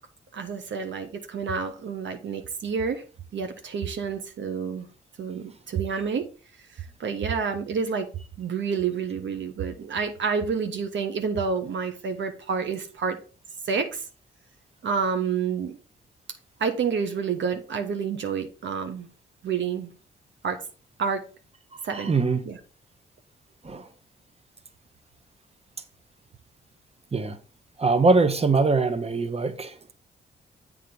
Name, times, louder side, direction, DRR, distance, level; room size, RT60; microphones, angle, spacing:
voice 1, 0.3-3.0 3.3-4.9 5.2-6.3 6.7-8.1 8.4-13.2 13.6-14.1 14.8-15.8 16.6-19.1 19.4-19.9 20.4-20.6 21.0-21.2 21.8-22.1 22.4-22.6, right 6 dB, 60° right, 0.9 m, -29 dB
voice 2, 21.9-22.4 23.6-23.9 27.1-27.4 27.8-29.8, right 3 dB, 30° right, 1.1 m, -22 dB
7.8 x 3.7 x 5.1 m
supercardioid pair, 50°, 21 cm